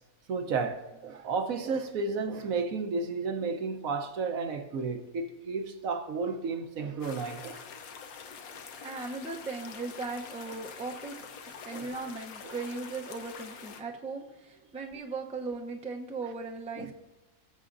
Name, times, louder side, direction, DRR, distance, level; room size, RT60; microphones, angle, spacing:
voice 1, 0.3-7.6 11.7-11.9 12.4-12.6 16.8-16.9, right 4 dB, 75° right, 1.3 m, -32 dB
sound 1, 7.0-13.8, left 6 dB, 90° left, 1.3 m, -46 dB
voice 2, 8.8-16.9, right 3 dB, 10° right, 0.4 m, -38 dB
19.0 x 7.4 x 2.6 m
omnidirectional pair, 1.5 m